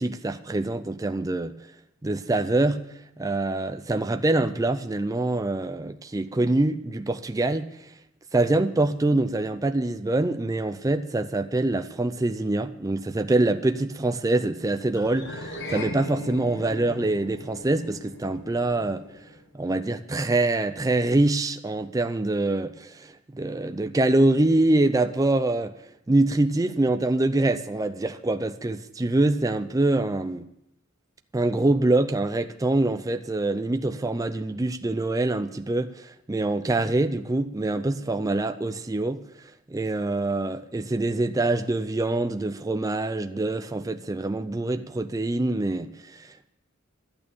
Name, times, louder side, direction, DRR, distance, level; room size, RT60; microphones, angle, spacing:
voice 1, 0.0-1.6 2.0-2.8 3.2-7.9 8.3-19.0 19.5-25.7 26.1-30.5 31.3-46.5, right 2 dB, 15° right, 0.4 m, -25 dB
sound 1, 14.9-19.5, left 1 dB, 60° left, 1.6 m, -38 dB
12.5 x 8.9 x 7.0 m
head